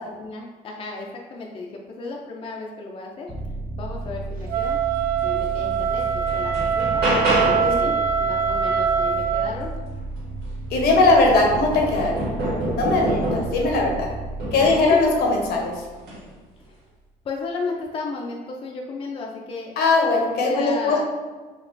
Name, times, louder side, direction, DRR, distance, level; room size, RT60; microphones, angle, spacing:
voice 1, 0.0-3.3 3.8-4.8 5.2-7.0 7.4-7.9 8.2-9.7 10.9-11.2 11.4-11.7 14.6-15.0 16.6-16.8 17.2-19.7 20.4-21.0, left 3 dB, 35° left, -1 dB, 0.4 m, -34 dB
sound 1, 3.3-16.7, right 2 dB, 30° right, 0.9 m, -34 dB
Wind instrument woodwind instrument, 4.5-9.5, right 7 dB, 55° right, 0.4 m, -23 dB
sound 2, 5.4-5.5 6.0-7.8 10.2-10.3 10.7-13.7 14.4-14.9 16.0-16.2, right 1 dB, 75° right, 1.2 m, -27 dB
voice 2, 10.7-12.3 12.8-14.1 14.5-15.8 19.8-21.0, left 3 dB, 70° left, 0 dB, 0.8 m, -19 dB
4.3 x 2.3 x 2.5 m, 1.3 s
cardioid pair, 110°, 17 cm